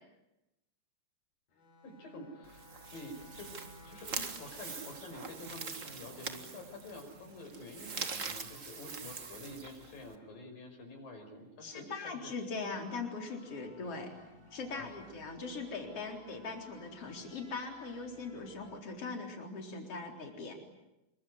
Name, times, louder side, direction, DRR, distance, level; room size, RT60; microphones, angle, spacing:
Bowed string instrument, 1.5-6.0, left 1 dB, 85° left, 5.3 m, -57 dB
voice 1, 1.8-3.6 3.9-12.4 14.7-15.1, left 1 dB, 70° left, 4 dB, 7.1 m, -48 dB
sound 1, 2.4-10.2, right 5 dB, 50° right, 0.8 m, -43 dB
voice 2, 11.6-14.1 14.5-20.5, left 4 dB, 40° left, 2 dB, 4.8 m, -40 dB
sound 2, 12.7-18.8, equal, 5° right, 2.8 m, -58 dB
26.5 x 23.5 x 9.6 m, 0.93 s
omnidirectional pair, 4.1 m